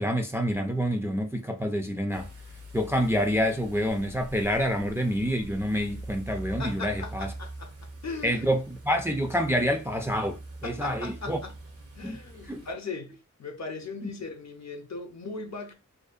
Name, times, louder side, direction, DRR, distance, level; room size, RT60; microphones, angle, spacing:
voice 1, 0.0-2.3 2.7-7.3 8.2-11.4 12.0-12.2 12.5-12.6, equal, 10° right, 0.3 m, -27 dB
Broom Bear Street Cleaner Brushes Aproach Idle Drive Away, 2.1-12.7, right 1 dB, 50° right, 0.6 m, -43 dB
voice 2, 6.6-8.4 10.6-11.5 12.0-15.7, left 4 dB, 65° left, 0.6 m, -38 dB
2.6 x 2.1 x 2.4 m
wide cardioid pair, 60°, 30 cm